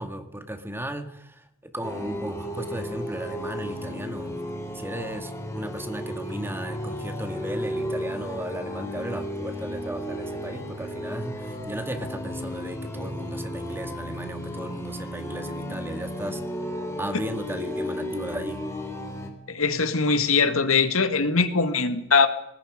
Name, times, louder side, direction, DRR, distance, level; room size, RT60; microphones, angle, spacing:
voice 1, 0.0-4.4 4.7-16.4 17.0-18.6, right 1 dB, 10° right, 8 dB, 1.9 m, -35 dB
sound 1, 1.8-19.3, equal, 15° left, 3.4 m, -34 dB
voice 2, 19.5-22.3, left 4 dB, 75° left, 10 dB, 1.9 m, -21 dB
25.5 x 20.0 x 5.2 m, 0.78 s
head